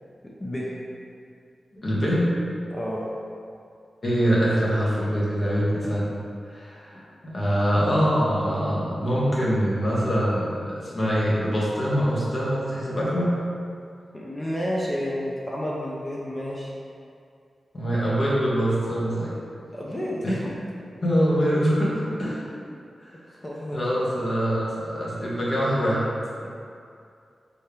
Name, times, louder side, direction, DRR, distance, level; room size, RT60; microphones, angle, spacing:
voice 1, 0.2-0.8 2.7-3.0 14.1-16.8 19.7-20.5 23.3-24.1 26.4-26.5, equal, 25° left, -5 dB, 0.6 m, -31 dB
voice 2, 1.8-2.4 4.0-6.1 6.5-13.3 17.7-19.3 20.2-20.4 21.0-22.4 23.7-26.0, equal, 50° left, -7 dB, 1.3 m, -24 dB
4.4 x 3.4 x 3.2 m, 2.4 s
cardioid pair, 65°, 0 cm